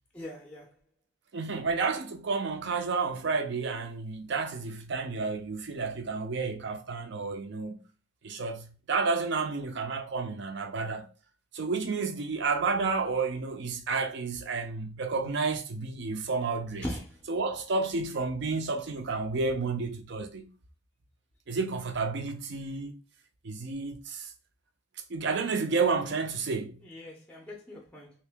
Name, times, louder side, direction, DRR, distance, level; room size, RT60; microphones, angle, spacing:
voice 1, 0.1-0.7 16.8-17.2 26.8-28.1, left 1 dB, 5° left, 0.5 m, -40 dB
voice 2, 1.3-7.8 8.2-11.1 11.5-16.9 17.3-20.5 21.5-22.9 23.4-24.3 25.1-26.8, right 4 dB, 60° right, 0.5 m, -31 dB
2.9 x 2.6 x 3.4 m
head